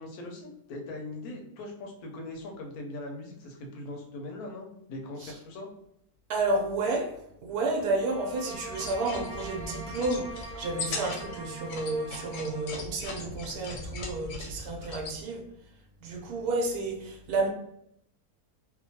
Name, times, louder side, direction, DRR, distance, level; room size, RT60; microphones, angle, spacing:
voice 1, 0.0-5.7, left 2 dB, 85° left, 2 dB, 1.1 m, -40 dB
voice 2, 6.3-7.2 7.4-15.4 16.0-17.5, right 2 dB, 85° right, 2 dB, 1.1 m, -31 dB
sound 1, 7.9-12.8, right 2 dB, 65° right, 0.9 m, -43 dB
sound 2, 8.7-15.2, left 3 dB, 70° left, 0.9 m, -40 dB
2.8 x 2.2 x 2.7 m, 0.76 s
omnidirectional pair, 1.6 m